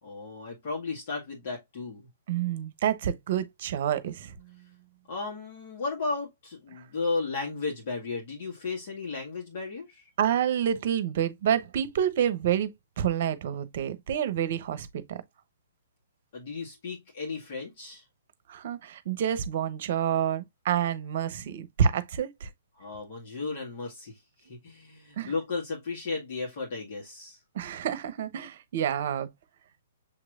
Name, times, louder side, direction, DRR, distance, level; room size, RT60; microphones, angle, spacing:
voice 1, 0.0-2.1 5.1-10.1 16.3-18.0 22.8-27.4, left 4 dB, 50° left, 1.8 m, -34 dB
voice 2, 2.3-4.3 10.2-12.7 13.0-15.2 18.5-22.5 25.2-25.3 27.5-29.3, right 9 dB, 55° right, 0.8 m, -28 dB
7.1 x 3.1 x 2.4 m
hypercardioid pair, 135°, 0 cm